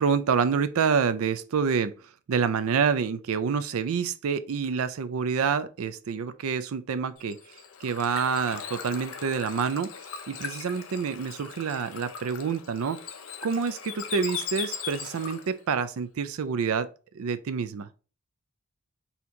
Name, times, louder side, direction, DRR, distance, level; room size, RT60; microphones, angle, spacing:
voice 1, 0.0-1.9 2.3-7.4 7.8-9.9 10.3-13.0 13.4-16.9 17.1-17.9, right 6 dB, 75° right, 0.4 m, -27 dB
Bird / Water, 7.2-15.6, left 7 dB, 70° left, 0.6 m, -39 dB
4.2 x 2.8 x 3.6 m
head